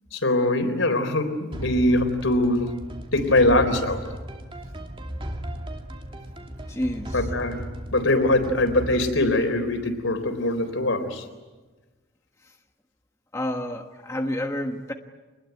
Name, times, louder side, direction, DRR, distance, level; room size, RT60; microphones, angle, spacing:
voice 1, 0.1-2.7 3.1-4.0 7.1-7.7 7.9-11.3, left 1 dB, 75° left, 8 dB, 3.9 m, -22 dB
sound 1, 1.5-10.4, equal, 25° right, 2.5 m, -36 dB
voice 2, 6.7-7.3 12.4-12.5 13.3-14.9, left 1 dB, 15° left, 3 dB, 1.4 m, -29 dB
27.0 x 21.0 x 9.3 m, 1.2 s
head